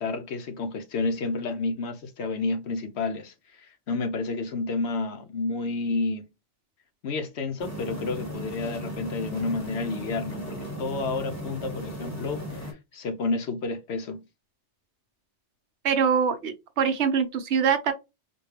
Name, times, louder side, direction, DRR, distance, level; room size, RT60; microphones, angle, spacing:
voice 1, 0.0-6.2 7.0-14.2, left 3 dB, 70° left, 0.9 m, -30 dB
sound 1, 7.6-12.7, equal, 15° left, 1.4 m, -36 dB
voice 2, 15.8-17.9, right 6 dB, 70° right, 0.9 m, -24 dB
4.3 x 2.2 x 3.2 m
omnidirectional pair, 1.2 m